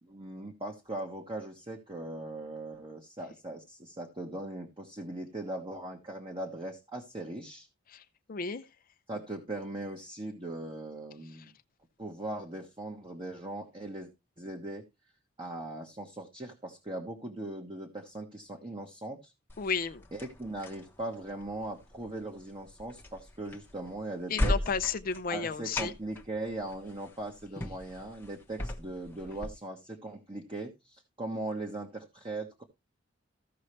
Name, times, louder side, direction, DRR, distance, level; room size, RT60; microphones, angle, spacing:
voice 1, 0.0-7.7 9.1-11.5 12.0-14.1 14.4-14.8 15.4-19.3 20.1-24.5 25.3-32.6, right 2 dB, 25° right, 1.3 m, -39 dB
voice 2, 8.3-8.6 19.6-20.0 24.3-25.9, left 5 dB, 45° left, 0.6 m, -32 dB
sound 1, 19.5-29.5, left 1 dB, 10° left, 1.0 m, -38 dB
15.0 x 5.6 x 3.2 m
head